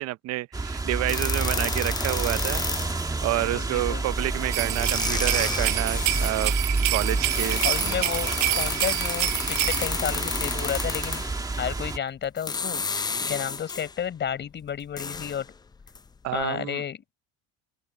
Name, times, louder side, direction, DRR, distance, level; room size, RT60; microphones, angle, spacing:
voice 1, 0.0-6.5 6.9-8.0 16.2-16.8, right 16 dB, 50° right, 0.8 m, -29 dB
sound 1, 0.5-12.0, right 3 dB, 10° right, 1.9 m, -29 dB
sound 2, 1.1-3.1 4.2-4.3 4.6-6.4 7.1-11.4 12.2-14.0 14.4-16.1 16.4-16.5, left 5 dB, 15° left, 0.5 m, -32 dB
voice 2, 3.3-4.0 7.1-11.2 11.6-15.5 16.3-17.0, left 8 dB, 35° left, 5.0 m, -32 dB
sound 3, 4.5-9.9, right 22 dB, 75° right, 1.3 m, -28 dB
open air
cardioid pair, 130°, 32 cm